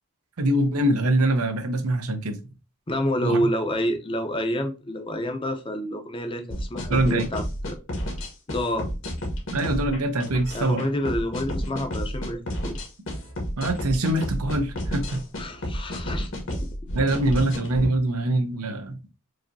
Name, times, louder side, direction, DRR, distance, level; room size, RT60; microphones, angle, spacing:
voice 1, 0.4-2.4 3.2-3.4 6.9-7.3 9.5-10.8 13.6-15.2 16.9-18.9, right 1 dB, 80° right, 0.7 m, -23 dB
voice 2, 2.9-7.8 8.5-8.9 10.5-12.8 15.4-16.7, equal, 25° left, 0.6 m, -28 dB
sound 1, 6.5-17.9, equal, 60° left, 1.2 m, -31 dB
4.8 x 2.7 x 2.6 m
head